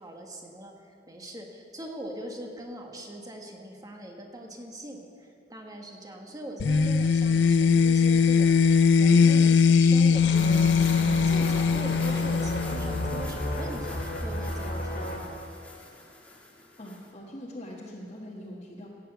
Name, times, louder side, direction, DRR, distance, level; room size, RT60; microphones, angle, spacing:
voice 1, 0.0-10.7 11.3-15.1, right 1 dB, 20° right, 2 dB, 1.5 m, -41 dB
sound 1, 6.6-13.3, left 5 dB, 85° left, 0.4 m, -21 dB
sound 2, 10.1-15.2, left 1 dB, 55° left, 2.1 m, -33 dB
sound 3, 10.3-17.1, left 2 dB, 10° left, 1.6 m, -45 dB
voice 2, 16.8-18.9, equal, 35° left, -5 dB, 1.4 m, -42 dB
16.5 x 7.0 x 7.9 m, 2.6 s
head